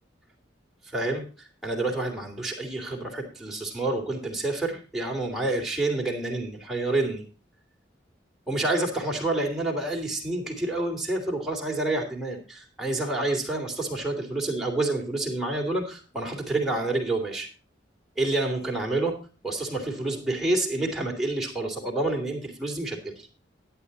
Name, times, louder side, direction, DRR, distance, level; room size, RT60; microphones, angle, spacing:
voice 1, 0.9-7.2 8.5-17.5 18.2-23.3, right 2 dB, ahead, -1 dB, 3.0 m, -28 dB
11.5 x 9.7 x 4.2 m, 0.33 s
head